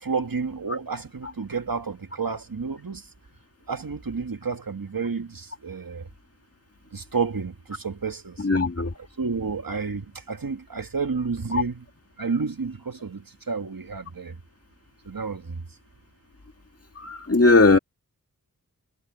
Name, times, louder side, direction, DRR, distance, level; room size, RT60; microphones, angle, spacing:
voice 1, 0.0-3.0 3.7-6.1 6.9-8.5 9.2-11.8 12.2-14.4 15.1-15.6, right 5 dB, 65° right, 1.7 m, -30 dB
voice 2, 8.4-8.9 11.5-11.6 17.0-17.8, left 3 dB, 40° left, 1.8 m, -19 dB
wide cardioid pair, 45°, 36 cm